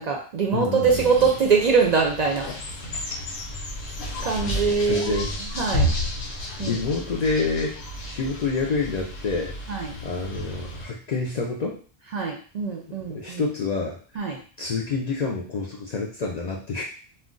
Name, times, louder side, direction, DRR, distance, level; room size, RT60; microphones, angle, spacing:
voice 1, 0.0-2.5 4.2-5.2 5.6-5.9 6.6-6.8 9.7-9.9 12.1-13.4 14.2-14.4, right 5 dB, 55° right, 0 dB, 0.5 m, -23 dB
voice 2, 0.5-1.3 4.8-5.4 6.6-7.8 8.0-9.5 10.0-11.8 13.1-14.2 14.6-16.8, left 4 dB, 55° left, -1 dB, 0.5 m, -28 dB
sound 1, 0.8-10.9, equal, 85° left, 1.0 m, -32 dB
2.4 x 2.2 x 3.7 m, 0.40 s
omnidirectional pair, 1.0 m